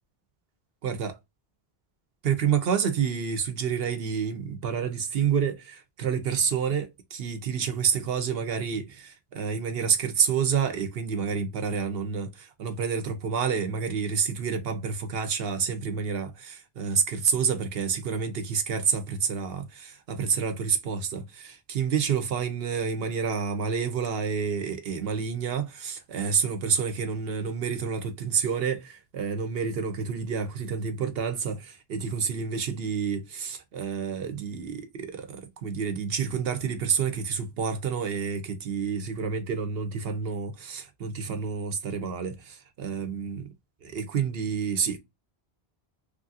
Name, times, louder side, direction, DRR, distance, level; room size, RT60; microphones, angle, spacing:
voice 1, 2.2-43.5 43.8-45.0, right 6 dB, 75° right, 0.8 m, -29 dB
3.1 x 2.4 x 2.5 m
omnidirectional pair, 1.0 m